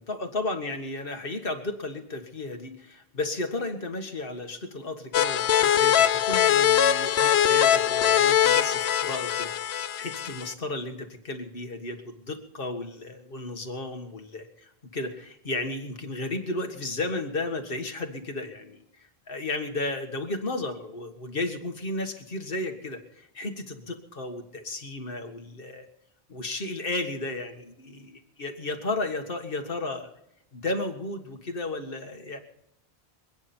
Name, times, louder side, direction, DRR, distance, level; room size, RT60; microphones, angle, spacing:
voice 1, 0.0-25.9 26.3-30.1 30.5-32.4, left 2 dB, 55° left, 4 dB, 1.9 m, -34 dB
sound 1, 5.1-10.5, left 10 dB, 75° left, 0.9 m, -22 dB
27.5 x 9.5 x 4.4 m, 0.82 s
omnidirectional pair, 1.1 m